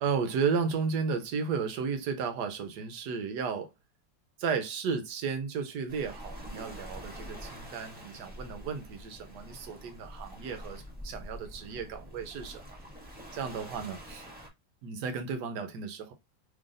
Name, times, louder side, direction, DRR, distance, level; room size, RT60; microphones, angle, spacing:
voice 1, 0.0-3.7 4.4-12.8 13.3-14.3 14.8-16.1, right 5 dB, 70° right, 1.2 m, -33 dB
Waves surf, 5.9-14.5, equal, 5° right, 0.9 m, -46 dB
3.7 x 3.3 x 2.5 m
omnidirectional pair, 2.0 m